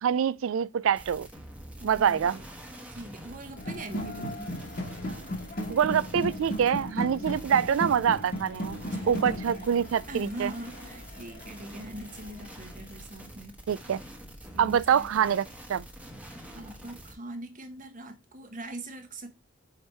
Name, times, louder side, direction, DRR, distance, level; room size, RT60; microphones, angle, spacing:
voice 1, 0.0-1.3 1.8-2.4 5.7-8.8 9.1-10.5 13.7-14.0 14.6-15.4 15.7-15.8, right 8 dB, 85° right, 0.4 m, -25 dB
sound 1, 0.9-17.1, equal, 5° right, 1.1 m, -46 dB
voice 2, 1.8-2.5 2.9-4.5 8.9-9.7 10.1-13.5 14.5-15.4 16.5-19.3, right 1 dB, 40° right, 1.0 m, -42 dB
sound 2, 3.6-12.5, equal, 50° left, 1.3 m, -36 dB
5.0 x 4.5 x 4.4 m
head